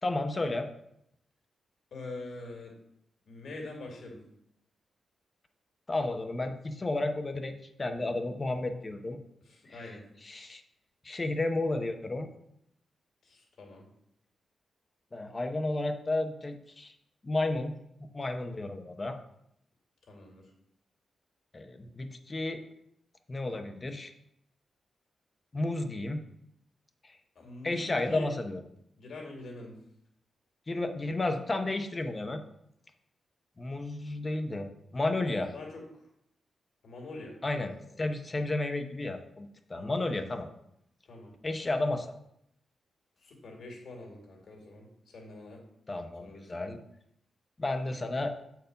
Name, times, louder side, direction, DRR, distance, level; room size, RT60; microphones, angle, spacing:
voice 1, 0.0-0.7 5.9-9.2 10.3-10.6 11.0-12.3 15.1-16.9 17.2-17.7 18.1-19.2 21.5-22.6 23.3-24.1 25.5-26.2 27.0-27.2 27.6-28.6 30.7-32.4 33.6-35.5 37.4-37.7 38.0-40.5 41.4-42.1 45.9-46.8 47.6-48.3, left 2 dB, 30° left, 7 dB, 0.9 m, -32 dB
voice 2, 1.9-2.7 3.3-4.2 9.4-10.0 13.2-13.9 20.0-20.5 27.3-28.3 29.0-29.8 35.1-36.1 36.8-38.1 39.7-40.0 41.0-41.3 43.2-45.6 46.2-46.5, left 2 dB, 65° left, 0 dB, 2.3 m, -45 dB
7.5 x 4.7 x 5.3 m, 0.75 s
cardioid pair, 95°, 0 cm